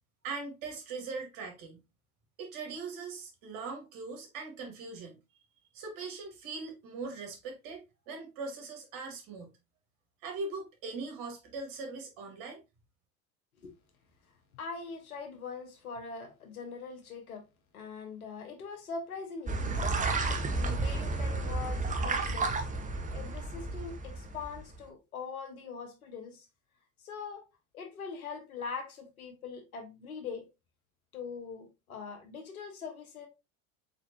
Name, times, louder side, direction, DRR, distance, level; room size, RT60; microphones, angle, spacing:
voice 1, 0.2-1.8 2.4-5.2 5.7-9.6 10.2-12.6, right 4 dB, 55° right, 2.1 m, -40 dB
voice 2, 14.6-17.5 17.7-20.0 20.5-22.6 23.1-26.5 27.0-27.4 27.7-30.5 31.1-33.3, left 5 dB, 80° left, 1.3 m, -42 dB
sound 1, 19.5-24.7, right 3 dB, 20° right, 0.9 m, -32 dB
4.3 x 3.9 x 2.7 m
hypercardioid pair, 75°, 42 cm